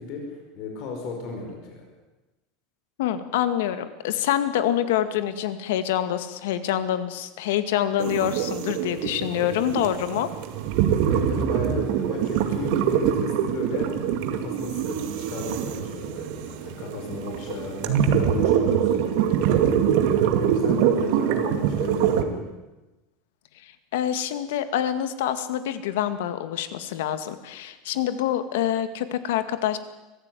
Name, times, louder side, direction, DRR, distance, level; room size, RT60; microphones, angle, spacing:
voice 1, 0.0-1.9 11.1-22.5, left 3 dB, 45° left, 2 dB, 5.4 m, -35 dB
voice 2, 3.0-10.3 23.6-29.8, left 11 dB, 85° left, 11 dB, 2.1 m, -26 dB
sound 1, 8.0-22.2, right 9 dB, 55° right, 2.2 m, -24 dB
24.0 x 15.5 x 9.4 m, 1.1 s
supercardioid pair, 175°, 0 cm